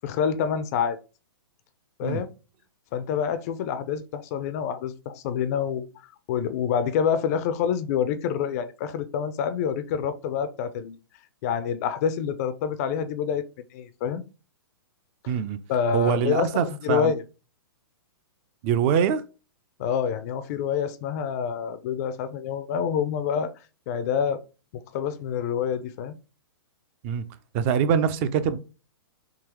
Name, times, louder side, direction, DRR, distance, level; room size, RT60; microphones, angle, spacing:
voice 1, 0.0-1.0 2.0-2.3 2.9-5.9 6.3-11.0 11.4-13.5 13.7-14.2 15.7-17.2 19.8-23.5 23.9-24.4 24.7-26.1, left 7 dB, 40° left, 0.4 m, -27 dB
voice 2, 15.3-15.6 15.9-17.1 18.6-19.2 27.0-27.2 27.5-28.6, right 8 dB, 35° right, 0.4 m, -24 dB
3.7 x 2.7 x 2.9 m
hypercardioid pair, 140°, 13 cm